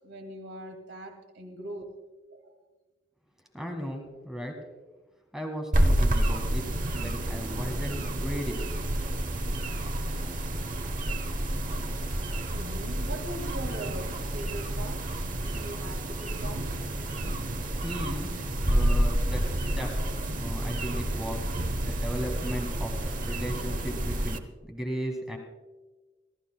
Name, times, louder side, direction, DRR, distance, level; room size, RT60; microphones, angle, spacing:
voice 1, 0.0-1.8 2.3-2.6 11.7-12.1 12.5-15.0 15.4-17.0, right 1 dB, 70° right, 3 dB, 2.2 m, -41 dB
voice 2, 3.5-4.6 5.3-6.7 7.0-8.7 17.8-18.3 18.6-20.0 20.4-21.5 21.8-25.4, equal, 5° right, 2 dB, 1.5 m, -36 dB
sound 1, 5.7-24.4, right 1 dB, 45° right, 1.0 m, -29 dB
sound 2, 12.9-23.7, right 1 dB, 30° left, 3.1 m, -43 dB
27.0 x 13.5 x 2.3 m, 1.2 s
head